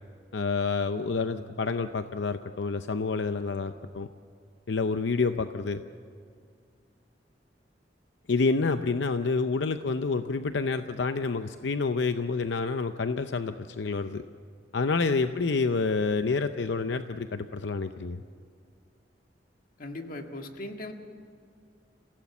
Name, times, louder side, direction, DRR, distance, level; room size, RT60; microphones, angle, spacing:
voice 1, 0.3-4.1 4.7-5.8 8.3-14.2 14.7-18.2, left 4 dB, 80° left, 9 dB, 0.6 m, -28 dB
voice 2, 19.8-20.9, left 1 dB, 50° left, 4 dB, 1.8 m, -39 dB
28.0 x 16.5 x 7.2 m, 2.3 s
head